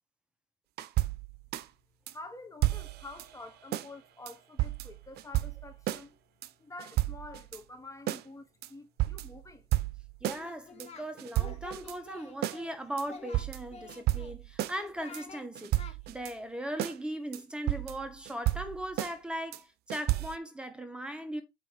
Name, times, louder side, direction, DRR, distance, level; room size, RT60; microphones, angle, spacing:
sound 1, 0.8-1.7 2.1-2.2 2.6-3.4 3.7-3.9 4.3-6.0 6.4-6.5 6.8-7.6 8.1-8.2 8.6-8.7 9.0-10.4 10.8-10.9 11.2-12.0 12.4-12.6 13.0-13.1 13.3-14.8 15.1-15.2 15.6-16.3 16.8-17.0 17.3-17.4 17.7-19.1 19.5-19.6 19.9-20.4, right 16 dB, 75° right, 0.7 m, -32 dB
voice 1, 2.1-6.2 6.6-9.7, left 2 dB, 20° left, 1.2 m, -48 dB
voice 2, 10.2-21.4, right 1 dB, 5° right, 1.3 m, -38 dB
Singing, 10.3-11.1 11.4-12.7 13.0-14.3 14.7-15.4 15.8-15.9, left 5 dB, 40° left, 2.0 m, -48 dB
8.5 x 3.1 x 5.0 m
cardioid pair, 110°, 17 cm